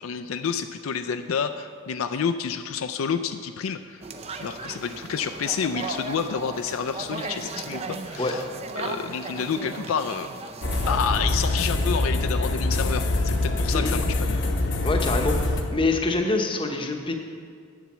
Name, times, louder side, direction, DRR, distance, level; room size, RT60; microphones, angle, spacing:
voice 1, 0.0-4.0 4.4-8.4 8.8-10.3 10.8-14.4, left 6 dB, 70° left, 9 dB, 0.4 m, -29 dB
sound 1, 4.0-11.0, right 3 dB, 30° right, 0.5 m, -36 dB
sound 2, 10.6-15.6, left 2 dB, 55° left, 0.9 m, -24 dB
voice 2, 14.8-15.4 15.7-17.1, left 3 dB, 25° left, 3 dB, 0.8 m, -25 dB
8.0 x 7.3 x 7.1 m, 2.2 s
head